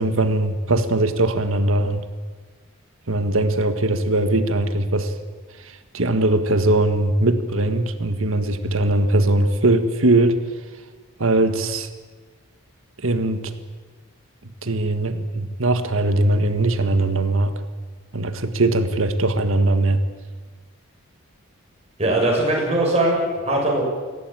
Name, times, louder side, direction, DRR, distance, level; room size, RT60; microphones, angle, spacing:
voice 1, 0.0-2.0 3.1-5.1 5.9-10.4 11.2-11.9 13.0-13.5 14.6-17.5 18.1-20.0, right 2 dB, 65° right, 9 dB, 1.6 m, -20 dB
voice 2, 22.0-23.8, right 1 dB, 30° right, -2 dB, 6.7 m, -20 dB
24.0 x 17.0 x 9.0 m, 1.4 s
head